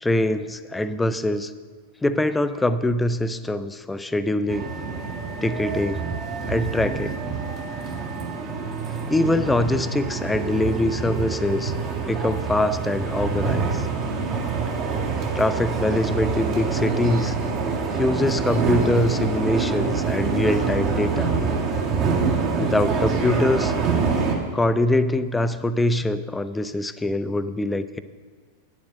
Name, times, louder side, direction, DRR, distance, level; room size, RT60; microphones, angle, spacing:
voice 1, 0.0-1.5 2.0-4.7 5.4-6.1 6.5-7.1 9.1-11.7 12.0-13.8 15.4-17.4 18.0-21.4 22.6-23.7 24.5-28.0, left 1 dB, 10° left, 13 dB, 0.4 m, -23 dB
sound 1, 4.5-24.4, right 5 dB, 35° right, 1.6 m, -26 dB
9.5 x 7.2 x 6.4 m, 1.5 s
figure-of-eight pair, 90°, 0 cm